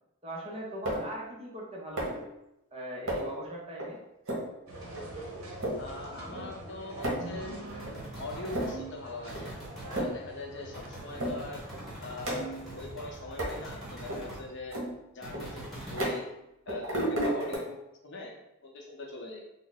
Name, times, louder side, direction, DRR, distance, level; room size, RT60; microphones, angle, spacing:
voice 1, 0.2-2.3 2.7-4.0, equal, 25° right, -2 dB, 0.6 m, -40 dB
sound 1, 0.9-1.2 2.0-2.3 3.1-3.4 3.8-3.9 4.3-4.5 5.0-5.1 5.5-5.8 6.4-6.5 6.7-7.3 7.9-8.0 8.4-8.9 9.4-9.5 9.8-10.3 10.6-10.7 11.2-11.4 11.7-12.7 13.4-13.6 14.1-14.2 14.7-16.4 16.7-17.6, right 1 dB, 60° right, 1.1 m, -33 dB
sound 2, 4.7-14.7, right 1 dB, 75° right, 0.8 m, -46 dB
voice 2, 5.8-9.5 9.9-11.6 12.0-14.8 15.1-16.2 16.7-17.8 18.0-18.3 18.6-19.4, left 2 dB, 55° left, 0 dB, 0.6 m, -42 dB
sound 3, 7.7-8.8 9.3-10.0 10.7-14.4 15.2-16.0, right 1 dB, ahead, 1.1 m, -44 dB
3.6 x 2.0 x 3.9 m, 0.87 s
head